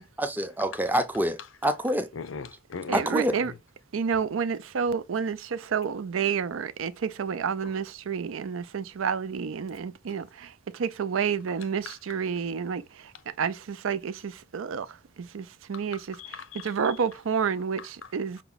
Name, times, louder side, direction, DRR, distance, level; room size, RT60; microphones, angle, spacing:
voice 1, 0.2-2.1 2.9-3.4, right 1 dB, 10° right, 0.5 m, -26 dB
voice 2, 2.1-3.6 7.6-7.7 11.9-12.0 15.7-16.7, left 5 dB, 80° left, 0.6 m, -40 dB
voice 3, 2.9-3.5 3.9-10.3 10.7-16.2 16.5-18.4, right 6 dB, 85° right, 0.5 m, -30 dB
5.8 x 2.2 x 3.9 m
head